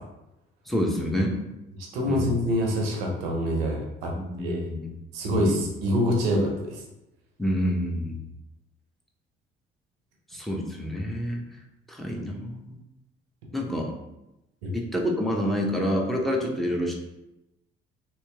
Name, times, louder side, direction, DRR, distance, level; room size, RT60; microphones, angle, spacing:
voice 1, 0.7-1.4 2.1-2.2 4.1-4.9 5.3-5.4 7.4-8.2 10.3-11.4 11.9-12.6 13.5-13.9 14.7-16.9, equal, ahead, -1 dB, 0.8 m, -27 dB
voice 2, 1.9-4.1 4.4-4.6 5.1-6.8 14.6-14.7, equal, 75° right, 0 dB, 0.9 m, -25 dB
3.1 x 3.0 x 3.4 m, 0.92 s
figure-of-eight pair, 50°, 30 cm